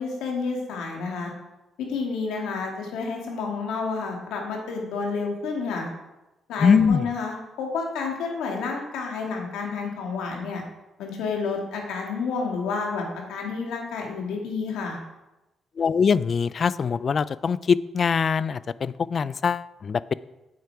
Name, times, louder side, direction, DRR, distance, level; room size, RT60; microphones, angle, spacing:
voice 1, 0.0-1.3 1.8-5.9 6.5-10.6 11.0-15.0, left 4 dB, 85° left, 0 dB, 2.4 m, -30 dB
voice 2, 6.6-7.1 15.8-20.1, left 6 dB, 50° left, 18 dB, 0.4 m, -22 dB
8.9 x 8.2 x 4.9 m, 0.99 s
cardioid pair, 80°, 0 cm